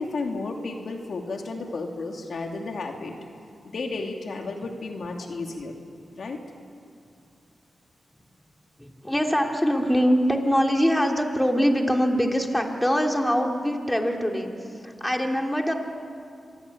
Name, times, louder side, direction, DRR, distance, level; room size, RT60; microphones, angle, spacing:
voice 1, 0.0-3.2 3.6-5.7 6.1-6.4, left 3 dB, 70° left, 2 dB, 2.8 m, -33 dB
voice 2, 8.8-15.7, equal, 10° left, 2 dB, 3.2 m, -23 dB
26.5 x 22.5 x 8.7 m, 2.4 s
cardioid pair, 55°, 0 cm